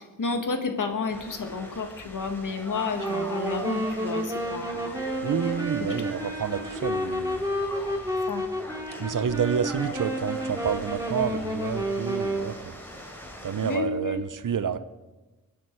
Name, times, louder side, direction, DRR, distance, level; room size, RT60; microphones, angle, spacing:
voice 1, 0.0-5.0 5.8-5.9 8.3-8.4 13.6-14.2, left 4 dB, 75° left, 5 dB, 1.8 m, -31 dB
sound 1, 1.1-13.8, equal, 5° left, 4.4 m, -42 dB
Wind instrument woodwind instrument, 3.0-12.5, right 1 dB, 10° right, 2.5 m, -30 dB
voice 2, 5.2-7.4 9.0-12.7 13.4-14.8, right 7 dB, 75° right, 12 dB, 0.9 m, -29 dB
23.0 x 9.3 x 4.6 m, 1.1 s
wide cardioid pair, 70°, 32 cm